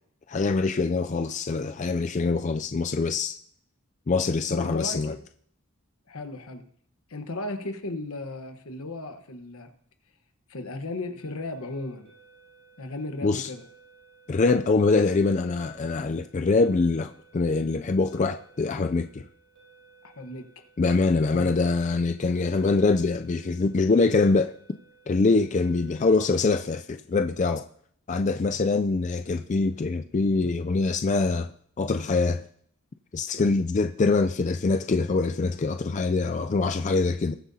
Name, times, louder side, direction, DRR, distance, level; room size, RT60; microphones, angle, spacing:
voice 1, 0.3-3.4 4.1-5.1 13.2-13.5 14.3-19.2 20.8-24.5 25.1-27.6 28.1-31.5 31.8-32.4 33.1-37.4, left 3 dB, 35° left, 0.3 m, -24 dB
voice 2, 4.5-5.2 6.1-6.6 7.1-9.7 10.5-12.1 12.8-13.6 20.0-20.6 21.3-21.6, left 2 dB, 80° left, 1.2 m, -35 dB
sound 1, 11.2-26.4, right 4 dB, 85° right, 4.1 m, -57 dB
20.0 x 7.7 x 2.8 m
head